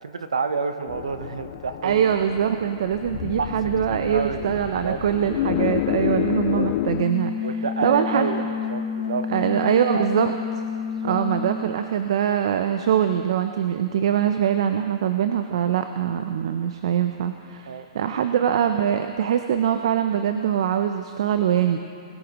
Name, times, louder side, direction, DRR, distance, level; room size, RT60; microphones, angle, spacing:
voice 1, 0.0-2.0 3.4-3.6 3.9-5.0 6.5-6.7 7.4-8.4 8.7-10.1 10.9-11.2 17.7-17.9, right 4 dB, 90° right, 10 dB, 1.0 m, -29 dB
sound 1, 0.9-7.0, left 17 dB, 40° left, 0.3 m, -29 dB
voice 2, 1.8-7.3 7.8-8.5 9.3-10.3 11.0-21.8, right 9 dB, 60° right, 8 dB, 0.6 m, -23 dB
sound 2, 6.8-11.8, left 6 dB, 90° left, 2.8 m, -29 dB
20.5 x 11.5 x 3.0 m, 2.5 s
hypercardioid pair, 140°, 3 cm